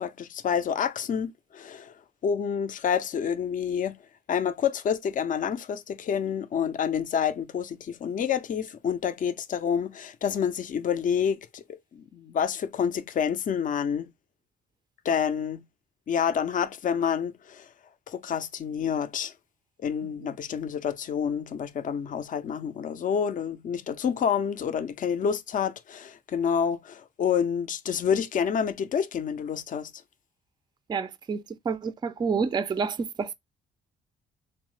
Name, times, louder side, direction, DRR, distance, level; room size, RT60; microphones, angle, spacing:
voice 1, 0.0-1.9 2.2-4.0 4.3-11.6 11.9-14.1 15.0-15.6 16.1-17.7 18.1-19.3 19.8-29.9, left 7 dB, 40° left, 0.4 m, -28 dB
voice 2, 30.9-33.3, right 5 dB, 20° right, 0.3 m, -29 dB
3.0 x 2.1 x 3.0 m
cardioid pair, 90°, 20 cm